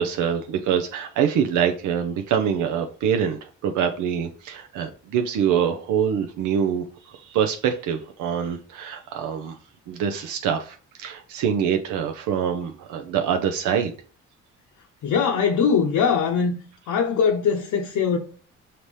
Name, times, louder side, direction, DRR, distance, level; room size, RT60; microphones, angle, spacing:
voice 1, 0.0-9.6 9.9-13.9, right 8 dB, 85° right, 0.6 m, -25 dB
voice 2, 15.0-16.6 16.9-18.2, left 6 dB, 75° left, 0.7 m, -21 dB
5.1 x 2.9 x 3.1 m
cardioid pair, 90°, 30 cm